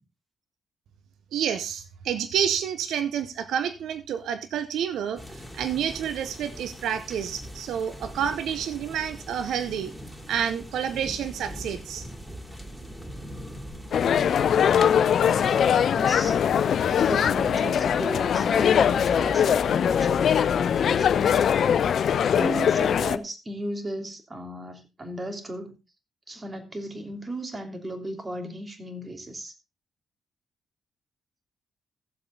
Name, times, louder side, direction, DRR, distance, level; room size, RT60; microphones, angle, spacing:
voice 1, 1.3-5.2 5.5-9.9 10.3-12.1, right 8 dB, 70° right, 0.8 m, -29 dB
sound 1, 5.2-22.6, equal, 5° right, 3.4 m, -43 dB
voice 2, 13.0-13.7 15.9-16.4 16.9-21.4 22.3-25.8 26.3-29.5, right 1 dB, 30° right, 3.1 m, -36 dB
sound 2, 13.9-23.2, left 8 dB, 60° left, 0.6 m, -21 dB
15.5 x 7.8 x 3.8 m
hypercardioid pair, 40°, 0 cm